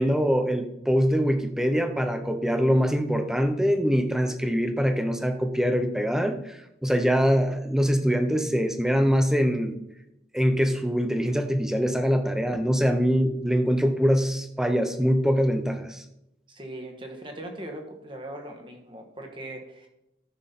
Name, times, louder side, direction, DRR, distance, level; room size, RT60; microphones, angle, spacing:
voice 1, 0.0-9.8 10.3-16.0, equal, 5° right, 6 dB, 0.7 m, -23 dB
voice 2, 16.5-19.9, right 1 dB, 25° right, 3 dB, 1.6 m, -40 dB
13.5 x 6.2 x 4.1 m, 0.84 s
head